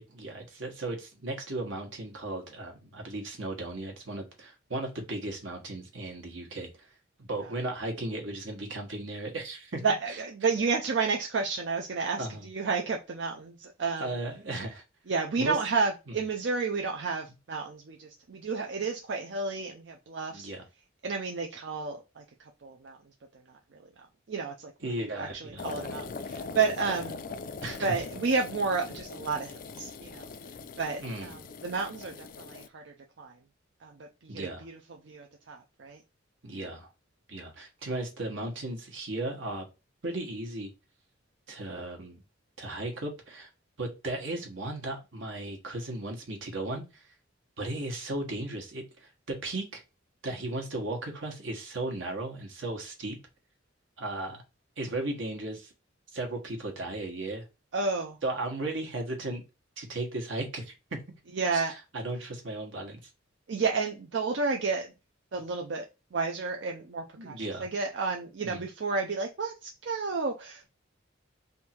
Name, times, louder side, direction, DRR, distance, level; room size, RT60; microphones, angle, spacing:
voice 1, 0.1-6.7 7.2-9.8 10.1-10.2 12.2-12.5 14.0-14.8 15.4-15.6 16.1-16.2 20.3-20.6 24.8-25.7 27.6-28.0 31.0-31.4 34.3-34.7 36.4-36.9 37.3-39.6 40.0-40.7 41.5-42.2 42.6-43.5 43.8-47.0 47.6-49.8 50.2-53.2 54.0-54.4 54.8-55.7 56.1-57.4 58.2-59.4 59.8-61.0 61.5-63.1 67.2-67.7 68.4-68.7, right 2 dB, 85° right, 3 dB, 1.3 m, -36 dB
voice 2, 9.8-14.1 15.1-20.5 21.0-22.2 22.6-23.0 23.7-23.8 24.3-24.7 25.1-27.2 27.8-30.3 30.8-33.3 33.8-33.9 34.2-34.8 35.1-36.0 57.7-58.2 61.3-61.7 63.5-64.9 65.3-65.9 66.1-70.7, right 4 dB, 65° right, 2 dB, 0.5 m, -31 dB
sound 1, 25.6-32.7, left 4 dB, 45° left, 0.3 m, -41 dB
3.6 x 2.7 x 4.3 m, 0.27 s
head